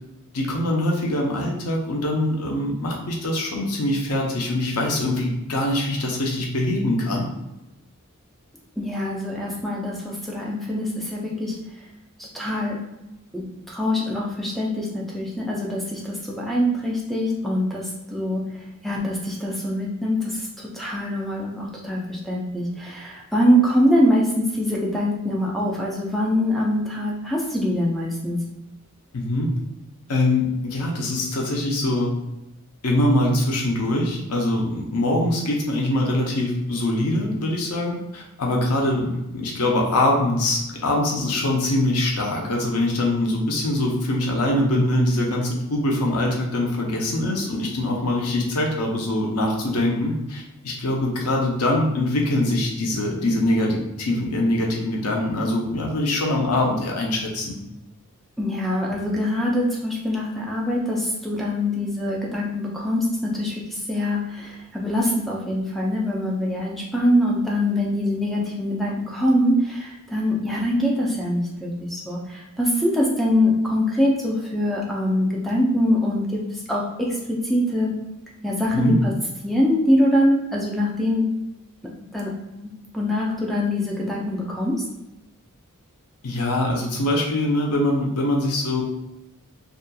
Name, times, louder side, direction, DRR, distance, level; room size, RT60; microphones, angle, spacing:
voice 1, 0.3-7.3 29.1-29.5 30.1-32.1 32.8-57.6 78.7-79.0 86.2-88.8, left 1 dB, 80° left, 0 dB, 0.6 m, -23 dB
voice 2, 8.8-11.5 12.2-12.8 13.3-18.4 18.8-28.4 58.4-76.4 76.7-78.0 78.4-79.1 79.4-81.2 82.1-82.3 82.6-84.8, left 1 dB, ahead, -3 dB, 0.4 m, -23 dB
2.7 x 2.4 x 2.3 m, 0.96 s
head